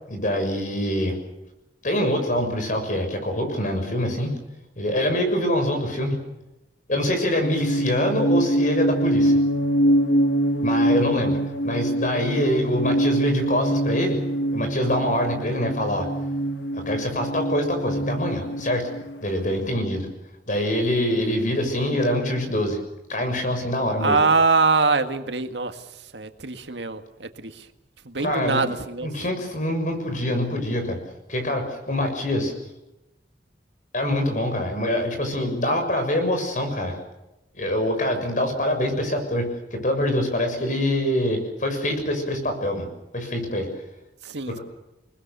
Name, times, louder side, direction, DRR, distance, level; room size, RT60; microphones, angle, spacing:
voice 1, 0.1-1.1 1.8-4.3 4.8-6.2 6.9-9.4 10.6-11.4 11.6-14.2 14.5-16.1 16.7-18.9 19.2-20.1 20.5-22.8 23.1-24.1 28.2-28.7 29.0-31.0 31.3-32.5 33.9-37.0 37.5-42.9 43.1-43.7 44.5-44.6, left 1 dB, 45° left, 6 dB, 6.6 m, -24 dB
sound 1, 7.4-19.4, right 1 dB, 75° left, 1.5 m, -24 dB
voice 2, 24.0-27.7 28.0-29.1 44.2-44.6, right 4 dB, 80° right, 7 dB, 1.9 m, -23 dB
29.0 x 20.0 x 7.0 m, 0.97 s
head